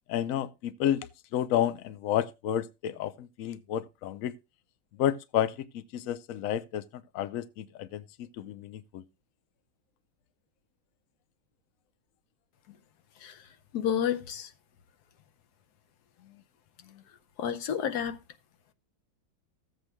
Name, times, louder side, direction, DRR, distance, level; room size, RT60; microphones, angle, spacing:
voice 1, 0.1-4.3 5.0-5.7 5.9-6.8 7.1-8.0 8.4-9.0, left 11 dB, 80° left, 0.7 m, -30 dB
voice 2, 13.7-14.5 17.4-18.2, left 9 dB, 65° left, 1.2 m, -30 dB
15.0 x 7.9 x 2.2 m
omnidirectional pair, 2.1 m